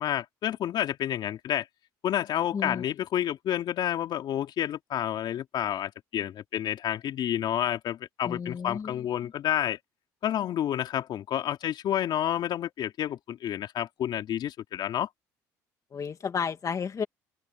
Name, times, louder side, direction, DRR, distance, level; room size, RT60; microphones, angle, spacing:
voice 1, 0.0-1.7 2.0-9.8 10.2-15.1, left 11 dB, 60° left, 3.3 m, -29 dB
voice 2, 8.3-8.9 15.9-17.0, left 6 dB, 40° left, 2.5 m, -32 dB
open air
supercardioid pair, 70°, 9 cm